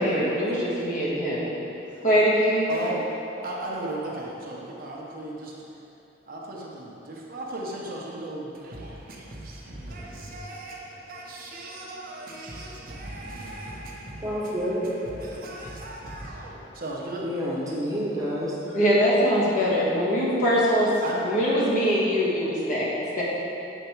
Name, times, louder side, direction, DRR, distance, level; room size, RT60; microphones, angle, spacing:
voice 1, 0.0-1.5 2.0-2.7 18.7-20.9 21.2-22.9 23.2-23.3, equal, 45° left, -7 dB, 1.6 m, -22 dB
voice 2, 2.7-3.1 3.4-5.6 6.3-17.3 21.0-21.2, right 1 dB, 50° right, -3 dB, 0.9 m, -36 dB
voice 3, 14.2-14.9 17.2-18.6, equal, 20° right, -6 dB, 1.1 m, -29 dB
7.9 x 4.5 x 4.5 m, 3.0 s
head